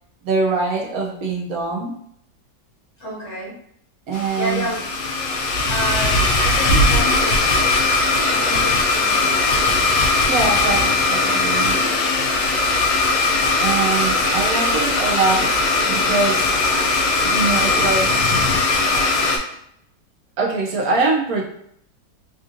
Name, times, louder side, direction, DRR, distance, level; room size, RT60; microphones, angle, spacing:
voice 1, 0.2-1.9 4.1-4.7 10.3-11.9 13.6-16.8 17.2-18.7 19.5-19.6 20.4-21.4, right 4 dB, 70° right, -1 dB, 0.9 m, -23 dB
voice 2, 3.0-3.6 4.4-4.8 5.7-7.8 8.3-9.8 11.6-12.1, equal, 45° left, -7 dB, 1.4 m, -30 dB
Domestic sounds home sounds, 4.1-19.4, left 3 dB, 75° left, 1.1 m, -19 dB
3.4 x 2.6 x 2.5 m, 0.69 s
omnidirectional pair, 1.9 m